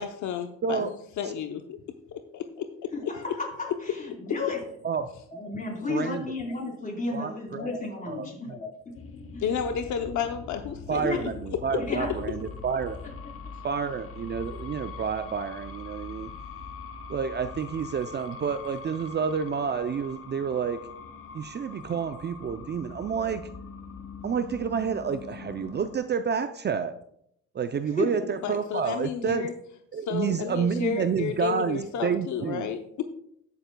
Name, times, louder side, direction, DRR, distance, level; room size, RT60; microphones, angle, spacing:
voice 1, 0.0-1.8 2.1-2.7 3.0-3.1 9.4-11.3 11.7-11.8 28.4-29.5 30.1-33.1, left 7 dB, 70° left, 6 dB, 0.8 m, -32 dB
voice 2, 2.9-4.6 5.3-9.0 9.3-9.4 11.0-11.3 11.8-12.2 27.9-28.3, left 3 dB, 25° left, -1 dB, 4.1 m, -33 dB
voice 3, 5.9-6.2 7.1-7.7 8.1-8.6 10.9-13.0 13.6-16.3 17.1-20.9 21.3-23.5 24.2-26.9 27.5-29.5 29.9-32.7, right 6 dB, 35° right, 10 dB, 0.5 m, -29 dB
sound 1, 8.9-26.0, left 4 dB, 45° left, 1.2 m, -42 dB
19.0 x 6.8 x 2.2 m, 0.72 s
cardioid pair, 90°, 30 cm